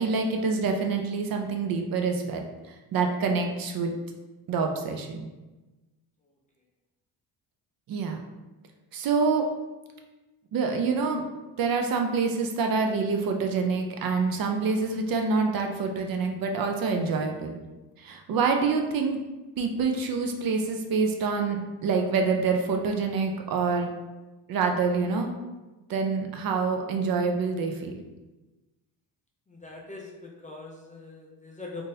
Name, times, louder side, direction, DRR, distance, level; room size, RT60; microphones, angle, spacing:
voice 1, 0.0-2.4 2.9-3.9 4.5-5.3 7.9-8.2 8.9-9.4 10.5-11.3 11.6-17.6 18.0-19.2 19.6-23.9 24.5-25.3 25.9-28.0, right 4 dB, 50° right, 3 dB, 0.5 m, -26 dB
voice 2, 29.5-31.8, left 3 dB, 20° left, -2 dB, 0.4 m, -42 dB
3.7 x 2.6 x 2.7 m, 1.1 s
cardioid pair, 110°, 45 cm